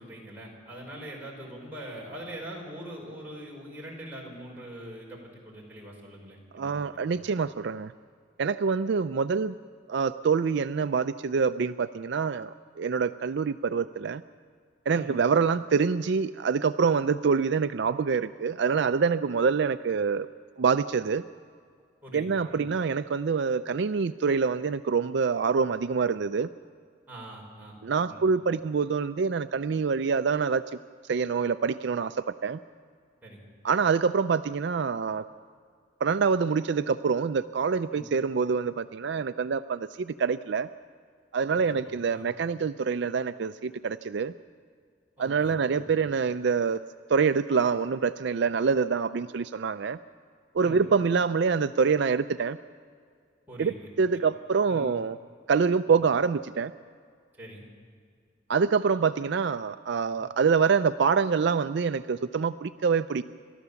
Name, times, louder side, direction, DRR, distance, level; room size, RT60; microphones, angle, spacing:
voice 1, 0.0-7.2 14.9-15.2 22.0-22.6 27.1-27.7 28.1-28.2 33.2-33.4 37.9-38.0 41.9-42.3 45.2-45.9 50.6-50.8 53.5-53.9 54.7-54.9 55.8-56.0 57.4-57.6 60.2-60.3, right 1 dB, 10° right, -3 dB, 5.4 m, -43 dB
voice 2, 6.5-7.9 8.4-9.6 9.9-14.2 14.9-20.3 20.6-21.2 22.1-26.5 27.8-30.6 31.1-32.2 32.4-32.6 33.6-35.2 36.0-40.7 41.3-44.3 45.2-46.8 47.1-50.0 50.5-52.6 53.6-55.2 55.5-56.7 58.5-63.2, right 5 dB, 65° right, 12 dB, 0.4 m, -26 dB
29.0 x 13.0 x 7.0 m, 2.1 s
head